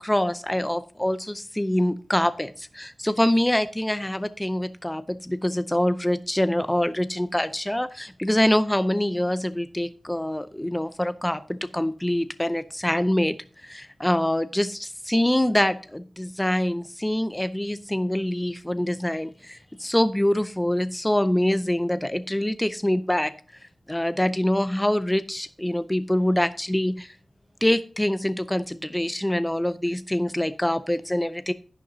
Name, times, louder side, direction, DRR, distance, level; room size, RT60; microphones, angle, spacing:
voice 1, 0.0-23.3 23.9-27.2 27.6-31.5, left 1 dB, 10° left, 13 dB, 0.5 m, -25 dB
11.0 x 10.0 x 2.7 m, 0.42 s
cardioid pair, 55°, 0 cm